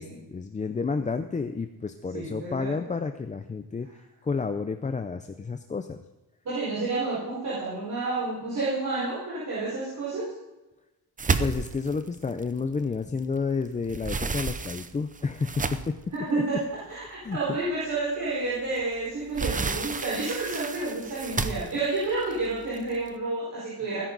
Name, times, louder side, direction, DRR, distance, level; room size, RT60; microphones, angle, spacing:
voice 1, 0.0-3.9 4.2-6.0 11.4-16.0 17.2-17.6 21.4-21.5, left 4 dB, 20° left, 8 dB, 0.5 m, -30 dB
voice 2, 2.1-2.8 6.4-10.3 16.1-16.6 16.9-24.0, right 3 dB, 50° right, -8 dB, 4.9 m, -30 dB
sound 1, 11.2-13.4 13.7-16.1 16.7-16.8 17.3-17.4 18.8-23.1, right 4 dB, 20° right, 0.6 m, -31 dB
17.5 x 10.5 x 4.0 m, 1.1 s
wide cardioid pair, 150°, 39 cm